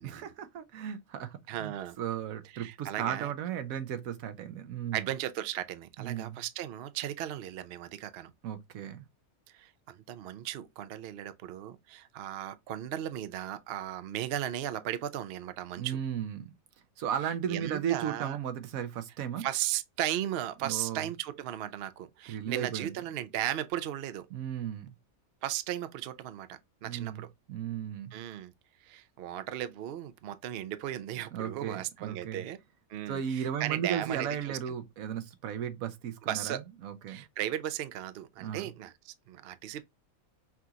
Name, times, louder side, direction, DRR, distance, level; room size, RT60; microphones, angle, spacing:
voice 1, 0.0-5.1 6.0-6.4 8.4-9.0 15.8-16.5 17.0-19.5 20.6-21.1 22.3-22.9 24.3-24.9 26.8-28.1 31.3-32.4 33.1-37.2 38.4-38.7, right 9 dB, 80° right, 1.1 m, -35 dB
voice 2, 1.5-2.0 2.5-3.3 4.9-8.3 9.5-16.0 17.5-18.4 19.4-24.3 25.4-27.3 28.1-28.5 28.8-32.6 32.9-34.6 36.2-36.6 37.1-39.8, right 12 dB, 65° right, 0.6 m, -36 dB
5.8 x 2.5 x 2.8 m
omnidirectional pair, 1.5 m